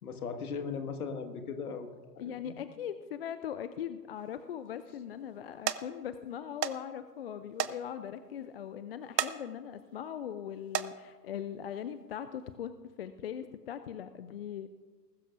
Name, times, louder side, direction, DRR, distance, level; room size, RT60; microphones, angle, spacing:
voice 1, 0.0-1.9 2.2-2.5, left 5 dB, 60° left, 6 dB, 1.8 m, -38 dB
voice 2, 2.2-12.7 13.0-14.7, left 9 dB, 40° left, 12 dB, 0.5 m, -40 dB
sound 1, 4.2-4.7 5.2-5.4 5.7-5.8 6.6-6.8 7.1-7.2 7.6-7.8 8.2-8.3 9.0-9.3 9.8-10.1 10.6-10.9 11.8-12.0 12.5-12.6, right 8 dB, 75° right, 0.9 m, -32 dB
20.5 x 12.5 x 2.6 m, 1.3 s
figure-of-eight pair, 115°, 49 cm